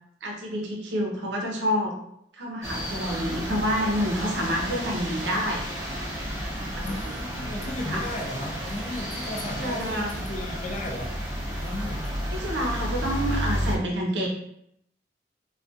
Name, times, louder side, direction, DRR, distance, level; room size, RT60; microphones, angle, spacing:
voice 1, 0.2-1.9 2.3-5.6 6.5-7.1 7.9-8.1 9.6-10.2 12.3-14.3, equal, 75° right, 0 dB, 0.6 m, -28 dB
sound 1, 2.6-13.8, equal, 15° right, 0.7 m, -32 dB
voice 2, 6.8-11.1 11.6-12.0, left 1 dB, 40° left, 1 dB, 0.4 m, -35 dB
2.3 x 2.2 x 2.6 m, 0.74 s
head